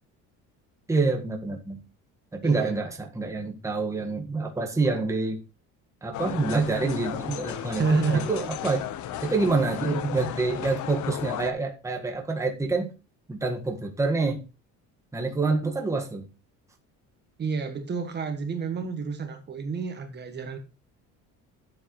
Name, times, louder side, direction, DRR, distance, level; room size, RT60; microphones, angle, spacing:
voice 1, 0.9-1.8 2.3-5.4 6.0-8.0 8.3-8.9 9.2-12.9 13.3-14.4 15.1-16.2, right 3 dB, 10° right, 1.6 m, -27 dB
voice 2, 2.4-2.7 7.8-8.3 17.4-20.6, right 4 dB, 30° right, 1.5 m, -29 dB
sound 1, 6.1-11.5, left 11 dB, 60° left, 1.1 m, -34 dB
12.5 x 7.7 x 3.1 m
cardioid pair, 145°, 33 cm